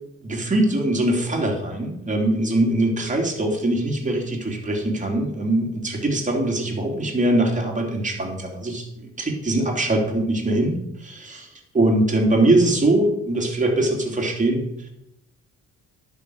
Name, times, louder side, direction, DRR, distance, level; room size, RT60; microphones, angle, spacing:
voice 1, 0.2-11.5 11.7-14.9, right 1 dB, 25° right, 0 dB, 3.4 m, -22 dB
11.0 x 6.5 x 6.5 m, 0.80 s
cardioid pair, 90°, 30 cm